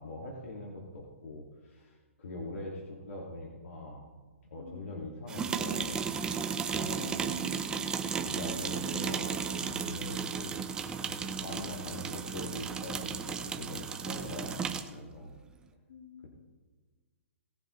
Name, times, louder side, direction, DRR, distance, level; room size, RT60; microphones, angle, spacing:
voice 1, 0.0-4.1 4.4-6.1 6.7-7.4 8.2-10.7 11.0-15.3, left 1 dB, 80° left, -3 dB, 2.3 m, -42 dB
voice 2, 4.6-5.0 6.9-8.5 15.9-16.3, left 6 dB, 60° left, -1 dB, 3.3 m, -51 dB
sound 1, 5.3-15.0, right 6 dB, 10° right, 0.7 m, -34 dB
19.5 x 7.6 x 3.2 m, 1.4 s
hypercardioid pair, 155°, 7 cm